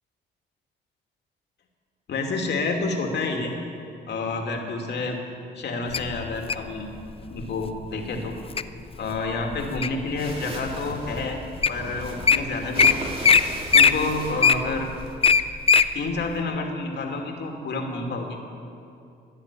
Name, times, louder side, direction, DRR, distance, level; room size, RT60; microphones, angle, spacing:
voice 1, 2.1-3.6 4.1-5.2 5.5-6.9 7.3-8.4 9.0-11.4 11.7-13.1 13.7-14.9 15.9-18.4, left 3 dB, 60° left, 2 dB, 2.6 m, -29 dB
Wild animals, 5.9-6.7 7.4-7.7 8.2-8.6 9.1-10.1 10.7-10.8 11.4-11.5 11.6-11.8 12.1-12.4 12.8-12.9 13.2-13.4 13.7-15.9 16.3-16.4, left 6 dB, 30° left, 0.6 m, -18 dB
sound 1, 10.2-15.1, right 1 dB, 30° right, 2.6 m, -37 dB
16.0 x 10.5 x 8.5 m, 2.6 s
cardioid pair, 90°, 20 cm